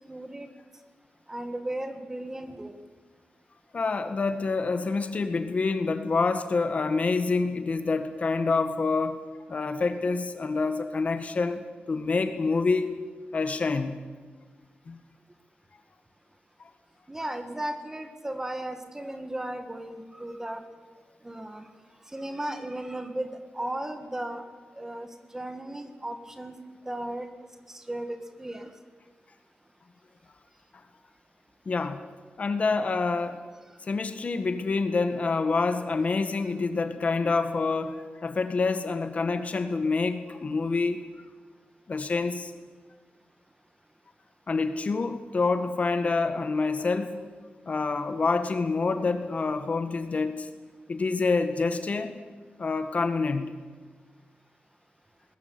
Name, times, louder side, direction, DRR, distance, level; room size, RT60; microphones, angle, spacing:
voice 1, 0.1-0.5 1.3-2.7 17.1-20.6 21.2-21.6 22.1-24.5 24.7-25.1 25.3-26.6 26.9-27.3 27.7-28.7, right 1 dB, 15° right, 7 dB, 2.0 m, -35 dB
voice 2, 3.7-9.2 9.5-12.9 13.3-14.0 14.9-15.0 31.6-32.0 32.4-33.4 33.8-37.9 38.2-41.0 41.9-42.5 44.5-47.2 47.7-50.5 50.9-52.1 52.6-53.5, left 4 dB, 40° left, 9 dB, 1.6 m, -27 dB
21.0 x 20.5 x 9.7 m, 1.4 s
wide cardioid pair, 155°, 3 cm